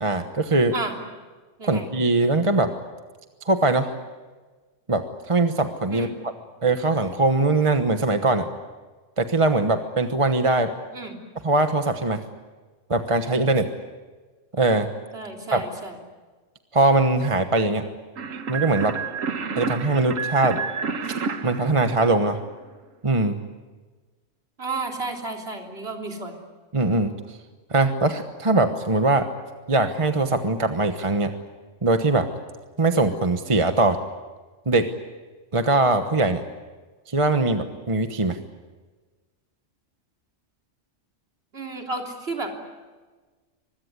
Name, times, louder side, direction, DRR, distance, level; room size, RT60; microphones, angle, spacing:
voice 1, 0.0-0.7 1.6-2.7 3.4-3.9 4.9-6.3 6.6-8.5 9.2-10.7 11.4-12.2 12.9-13.7 14.5-14.9 15.5-15.6 16.7-17.8 18.5-19.0 19.6-20.6 21.1-21.2 21.4-22.4 23.0-23.4 26.7-27.4 27.7-29.3 29.7-31.3 31.8-32.3 32.8-34.0 34.7-34.9 35.5-36.4 37.1-38.4, right 2 dB, 25° right, 7 dB, 1.1 m, -21 dB
voice 2, 15.1-16.0 24.6-26.4 41.5-42.5, right 3 dB, 50° right, 2 dB, 3.7 m, -32 dB
sound 1, 18.2-22.6, right 5 dB, 85° right, 1.6 m, -30 dB
24.5 x 21.5 x 9.7 m, 1.3 s
omnidirectional pair, 1.3 m